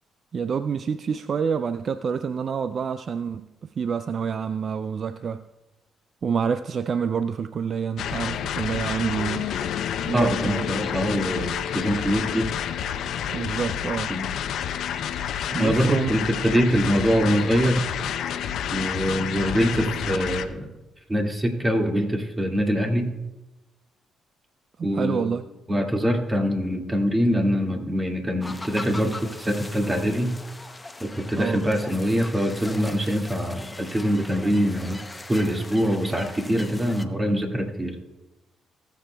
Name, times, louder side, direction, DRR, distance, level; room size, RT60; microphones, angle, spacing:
voice 1, 0.3-5.5 6.2-9.5 10.0-10.7 13.3-14.2 15.5-16.2 24.8-25.4 31.4-31.6, right 6 dB, 55° right, 0.3 m, -27 dB
sound 1, 8.0-20.5, left 9 dB, 70° left, 0.6 m, -29 dB
voice 2, 10.1-12.5 14.1-14.3 15.6-17.8 18.7-20.7 21.1-23.1 24.8-25.3 25.7-30.3 31.0-35.0 35.3-38.0, equal, 20° right, 2.1 m, -24 dB
sound 2, 28.4-37.0, left 2 dB, 20° left, 0.8 m, -40 dB
19.5 x 7.0 x 2.3 m
hypercardioid pair, 45°, 0 cm